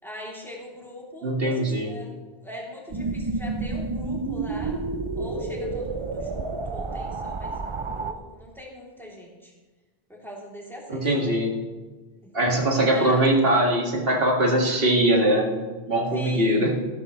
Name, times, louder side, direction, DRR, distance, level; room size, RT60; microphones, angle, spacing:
voice 1, 0.0-4.8 5.2-9.5 10.1-11.4 12.2-12.4 12.9-13.2 16.1-16.7, left 1 dB, ahead, -4 dB, 3.0 m, -41 dB
voice 2, 1.2-1.9 10.9-11.5 12.3-15.6 15.9-16.8, right 1 dB, 65° right, -1 dB, 2.2 m, -21 dB
sound 1, 2.9-8.1, right 3 dB, 35° right, 0.6 m, -30 dB
14.5 x 12.5 x 3.2 m, 1.3 s
omnidirectional pair, 1.1 m